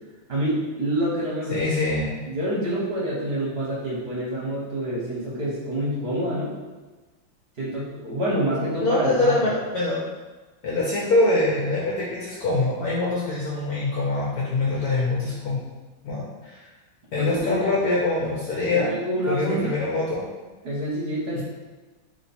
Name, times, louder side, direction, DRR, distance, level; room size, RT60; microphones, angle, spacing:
voice 1, 0.3-1.6 2.3-6.5 7.6-9.5 17.2-17.7 18.6-19.7 20.6-21.4, right 1 dB, 40° right, -6 dB, 1.0 m, -27 dB
voice 2, 1.5-2.1 8.8-10.0 10.6-15.6 16.0-16.7 17.1-19.0 19.3-20.2 21.3-21.4, left 2 dB, 70° left, -5 dB, 0.9 m, -24 dB
3.1 x 3.0 x 4.1 m, 1.2 s
omnidirectional pair, 2.2 m